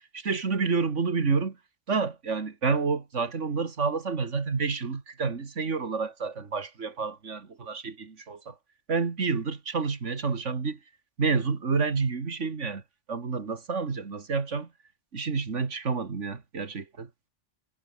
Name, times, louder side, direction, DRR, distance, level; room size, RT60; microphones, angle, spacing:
voice 1, 0.1-1.6 1.9-8.5 8.9-10.8 11.2-12.8 13.1-14.7 15.1-17.1, right 4 dB, 80° right, 2.4 m, -29 dB
omnidirectional pair, 1.2 m